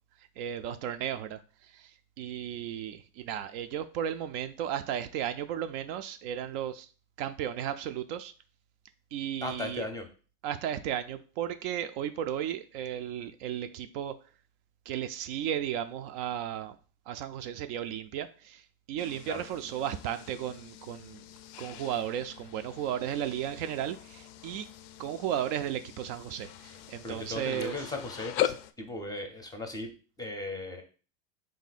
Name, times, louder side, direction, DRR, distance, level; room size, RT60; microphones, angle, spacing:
voice 1, 0.4-6.9 7.2-8.3 9.1-9.9 10.4-14.1 14.9-16.8 17.1-21.2 21.6-24.7 25.0-27.8, right 10 dB, 55° right, 9 dB, 0.4 m, -34 dB
voice 2, 9.4-10.1 19.3-19.4 27.0-30.8, left 2 dB, 10° left, 5 dB, 0.6 m, -37 dB
sound 1, 19.0-28.7, left 13 dB, 55° left, 0.5 m, -40 dB
3.7 x 2.6 x 4.1 m, 0.37 s
hypercardioid pair, 110°, 38 cm